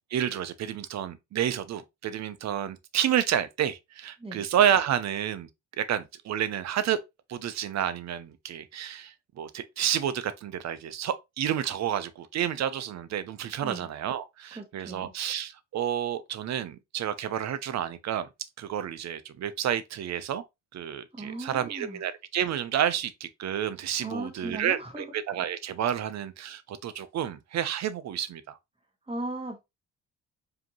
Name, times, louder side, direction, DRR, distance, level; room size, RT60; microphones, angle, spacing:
voice 1, 0.1-5.5 5.8-7.0 7.3-18.3 18.6-20.4 20.7-28.6, right 10 dB, 60° right, 0.6 m, -30 dB
voice 2, 14.5-15.1 21.1-22.0 24.0-25.0 26.0-26.1 29.1-29.6, right 2 dB, 20° right, 1.7 m, -37 dB
4.9 x 2.9 x 2.9 m
cardioid pair, 90°, 30 cm